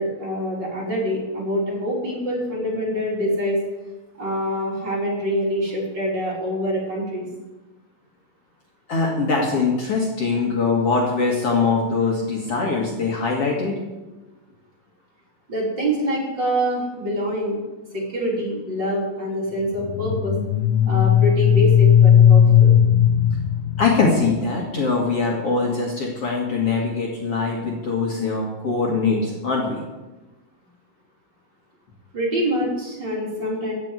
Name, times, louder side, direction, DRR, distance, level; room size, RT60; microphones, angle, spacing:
voice 1, 0.0-3.6 4.2-7.3 15.5-17.6 17.9-20.3 20.9-22.7 32.1-33.7, equal, 30° right, -4 dB, 3.7 m, -25 dB
voice 2, 8.9-13.8 23.8-29.8, left 4 dB, 50° left, -2 dB, 2.4 m, -22 dB
sound 1, 19.7-24.6, left 9 dB, 70° left, 1.7 m, -16 dB
15.0 x 6.2 x 9.1 m, 1.1 s
omnidirectional pair, 4.0 m